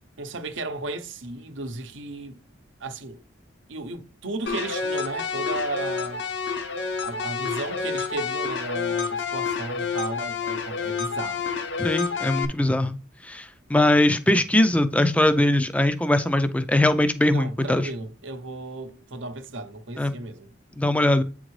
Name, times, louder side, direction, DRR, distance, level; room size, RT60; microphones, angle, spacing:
voice 1, 0.2-2.4 2.8-3.2 3.7-6.2 7.0-11.6 17.3-20.5, right 2 dB, 80° right, 0.8 m, -34 dB
sound 1, 4.5-12.5, left 5 dB, 70° left, 0.8 m, -29 dB
voice 2, 11.8-13.0 13.2-17.9 20.0-20.1 20.8-21.2, left 1 dB, 5° left, 0.3 m, -21 dB
8.5 x 3.8 x 3.2 m
head